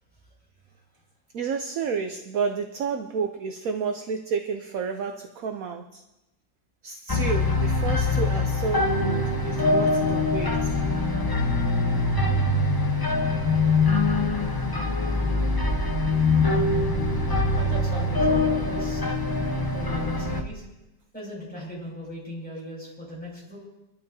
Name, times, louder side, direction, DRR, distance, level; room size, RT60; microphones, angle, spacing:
voice 1, 1.3-6.0 6.8-10.8 12.8-13.0, right 5 dB, 60° right, 6 dB, 1.0 m, -30 dB
sound 1, 7.1-20.4, left 2 dB, 20° left, 0.5 m, -23 dB
voice 2, 17.5-19.0 19.7-20.7 21.1-23.6, equal, 5° left, -6 dB, 6.2 m, -38 dB
25.0 x 12.5 x 2.7 m, 0.97 s
omnidirectional pair, 1.9 m